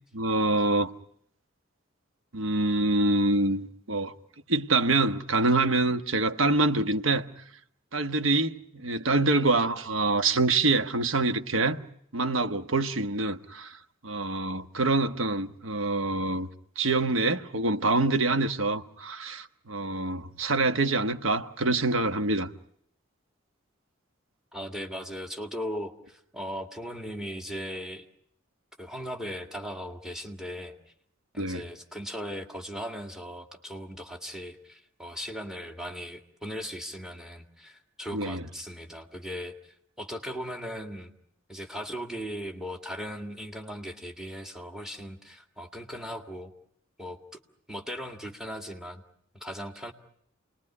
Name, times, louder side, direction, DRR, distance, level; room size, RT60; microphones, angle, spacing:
voice 1, 0.1-0.9 2.3-4.1 4.5-7.3 7.9-11.8 12.1-13.8 14.0-16.5 16.8-22.5 31.4-31.6 38.1-38.4, right 2 dB, 85° right, 1.3 m, -25 dB
voice 2, 24.5-28.1 28.8-30.7 31.3-41.1 41.5-46.5 47.0-47.2 47.7-49.0 49.3-49.9, equal, 5° right, 2.0 m, -38 dB
29.0 x 20.5 x 9.7 m
head